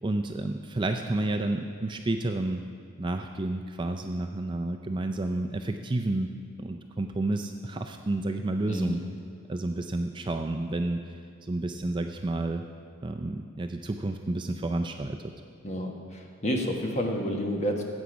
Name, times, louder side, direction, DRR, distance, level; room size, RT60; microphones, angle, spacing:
voice 1, 0.0-2.6 3.0-6.3 6.6-9.0 9.5-11.0 11.4-12.6 13.0-15.3, right 2 dB, 20° right, 5 dB, 0.4 m, -30 dB
voice 2, 8.7-9.0 15.6-17.8, equal, 30° left, 2 dB, 1.2 m, -30 dB
14.5 x 8.4 x 5.0 m, 2.1 s
head